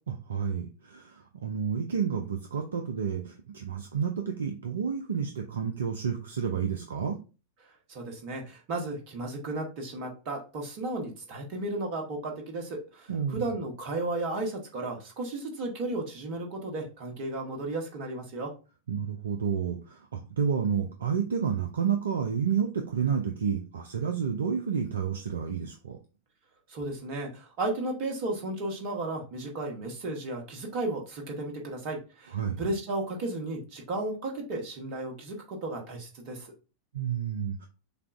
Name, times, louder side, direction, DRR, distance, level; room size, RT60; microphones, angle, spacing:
voice 1, 0.1-7.2 13.1-13.5 18.9-26.0 32.3-32.6 36.9-37.7, right 7 dB, 65° right, 4 dB, 0.5 m, -30 dB
voice 2, 7.9-18.5 26.7-36.5, right 2 dB, 45° right, 2 dB, 1.3 m, -34 dB
6.6 x 2.3 x 2.5 m, 0.33 s
figure-of-eight pair, 90°, 0 cm